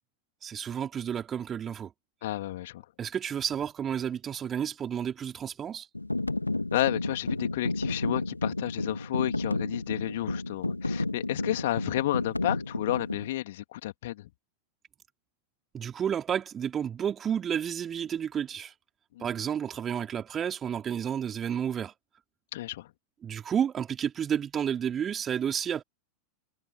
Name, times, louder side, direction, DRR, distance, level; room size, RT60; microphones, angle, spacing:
voice 1, 0.4-1.9 3.0-5.9 15.7-18.7 19.2-21.9 23.2-25.8, right 8 dB, 25° right, 3.4 m, -31 dB
voice 2, 2.2-2.8 6.7-14.3 19.1-19.3 22.5-22.9, left 15 dB, 55° left, 3.2 m, -31 dB
sound 1, 5.9-13.3, left 2 dB, 85° left, 2.2 m, -31 dB
figure-of-eight pair, 90°, 0 cm